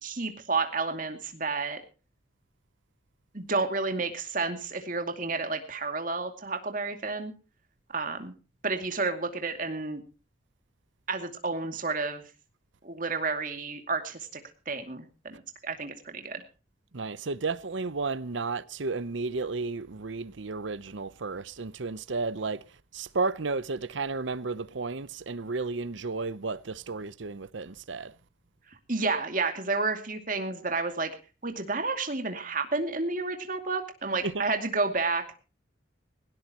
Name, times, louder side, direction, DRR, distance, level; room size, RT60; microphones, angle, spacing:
voice 1, 0.0-1.8 3.3-7.3 7.9-8.3 8.6-10.0 11.1-12.2 12.8-14.3 14.7-16.4 28.9-31.1 31.4-35.2, right 3 dB, 45° right, 2.4 m, -30 dB
voice 2, 16.9-22.6 22.9-28.1, right 3 dB, 75° right, 0.8 m, -33 dB
18.5 x 17.5 x 3.0 m
head